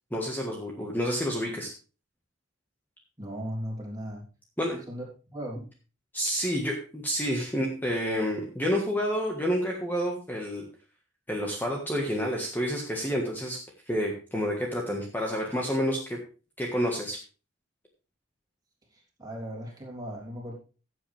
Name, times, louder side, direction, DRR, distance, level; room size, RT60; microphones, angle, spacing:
voice 1, 0.1-1.7 4.6-4.8 6.1-10.6 11.3-13.6 13.9-16.2 16.6-17.2, equal, 10° left, 0 dB, 1.6 m, -29 dB
voice 2, 3.2-4.2 4.9-5.0 5.3-5.6 18.9-20.5, equal, 20° right, -2 dB, 3.5 m, -37 dB
14.5 x 7.9 x 3.5 m, 0.35 s
head